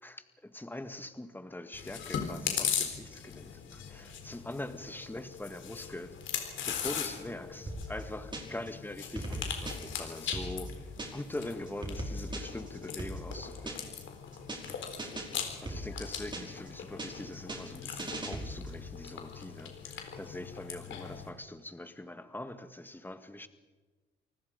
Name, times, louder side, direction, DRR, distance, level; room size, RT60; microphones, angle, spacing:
voice 1, 0.0-6.1 6.6-10.8 11.1-13.8 14.6-14.8 15.6-23.5, left 1 dB, 10° left, 9 dB, 1.7 m, -43 dB
Chewing mastication, 1.7-21.3, left 8 dB, 75° left, 4.0 m, -40 dB
sound 1, 7.7-8.7 9.0-11.4 11.7-14.0 14.3-14.7 15.0-16.7 17.0-18.8, right 1 dB, 25° right, 5.4 m, -39 dB
28.0 x 19.5 x 5.2 m, 1.3 s
cardioid pair, 90°, 20 cm